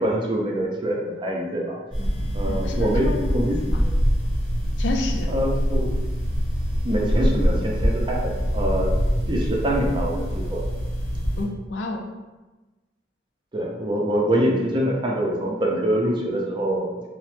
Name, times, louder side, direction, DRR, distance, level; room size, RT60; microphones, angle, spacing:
voice 1, 0.0-3.6 3.8-3.9 5.3-5.9 6.8-8.9 9.3-10.7 13.5-17.1, right 1 dB, 25° right, -2 dB, 0.4 m, -25 dB
sound 1, 1.9-11.4, equal, 5° left, 0.8 m, -24 dB
voice 2, 2.4-3.5 3.7-3.8 4.8-5.3 11.4-12.0, left 2 dB, 85° left, 3 dB, 0.4 m, -30 dB
3.0 x 2.0 x 3.0 m, 1.1 s
head